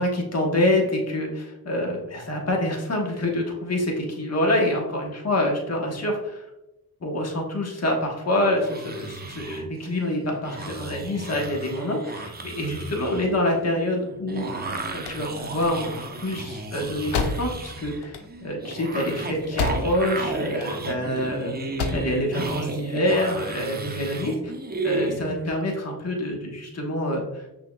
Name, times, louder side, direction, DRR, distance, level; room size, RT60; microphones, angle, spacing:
voice 1, 0.0-6.4 7.0-24.5 24.8-27.4, left 1 dB, 40° left, 0 dB, 1.3 m, -26 dB
sound 1, 8.6-25.5, right 2 dB, 25° right, 0.7 m, -34 dB
sound 2, 14.6-20.2 20.5-21.2 21.6-22.2, left 4 dB, 85° left, 0.7 m, -31 dB
5.8 x 3.6 x 2.3 m, 0.96 s
cardioid pair, 80°, 39 cm